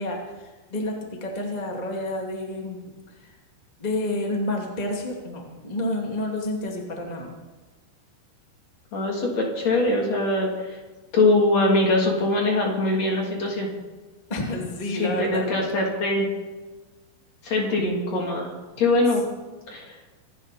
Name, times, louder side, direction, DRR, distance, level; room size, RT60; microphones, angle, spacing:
voice 1, 0.0-2.8 3.1-3.3 3.8-7.3 14.3-15.7, left 1 dB, 20° left, 0 dB, 1.0 m, -30 dB
voice 2, 8.9-10.5 11.1-13.7 15.0-16.3 17.4-18.5 18.8-19.2 19.7-19.9, left 2 dB, 40° left, -1 dB, 3.8 m, -22 dB
26.0 x 13.0 x 4.3 m, 1.2 s
omnidirectional pair, 5.2 m